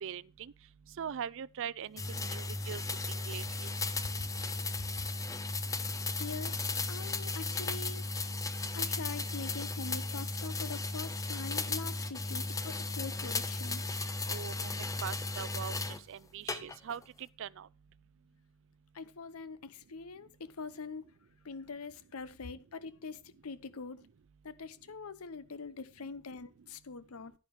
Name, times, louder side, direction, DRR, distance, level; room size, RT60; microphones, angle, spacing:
voice 1, 0.0-0.5 1.0-2.8 3.3-3.7 14.3-15.8 16.1-17.0 17.4-17.7, right 8 dB, 60° right, 0.4 m, -41 dB
sound 1, 2.0-16.0 16.5-17.0, left 3 dB, 15° left, 0.6 m, -35 dB
voice 2, 6.2-8.1 8.7-13.8 18.9-21.1 21.4-24.1 24.4-27.3, left 4 dB, 70° left, 0.7 m, -44 dB
10.5 x 10.5 x 3.2 m
head